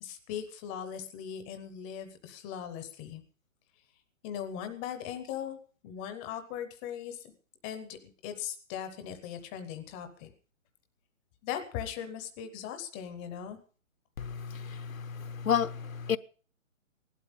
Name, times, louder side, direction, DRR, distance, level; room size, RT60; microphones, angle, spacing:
voice 1, 0.0-3.2 4.2-5.6 5.8-7.3 7.6-10.3 11.4-13.6, left 9 dB, 10° left, 0.6 m, -39 dB
voice 2, 14.2-16.2, left 8 dB, 90° left, 0.9 m, -31 dB
17.0 x 12.0 x 5.3 m
hypercardioid pair, 155°, 40 cm